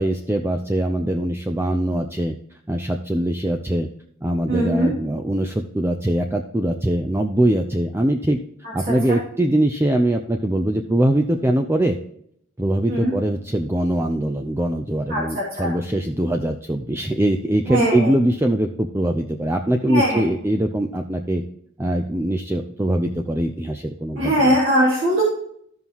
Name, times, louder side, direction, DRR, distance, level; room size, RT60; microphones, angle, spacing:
voice 1, 0.0-2.3 2.7-3.9 4.2-8.4 8.7-12.0 12.6-21.4 21.8-24.6, right 1 dB, 10° right, 4 dB, 0.5 m, -22 dB
voice 2, 4.5-4.9 9.1-9.2 12.9-13.1 15.1-15.7 17.7-18.1 19.8-20.2 24.2-25.2, equal, 45° right, -7 dB, 3.0 m, -20 dB
15.0 x 5.5 x 3.0 m, 0.69 s
head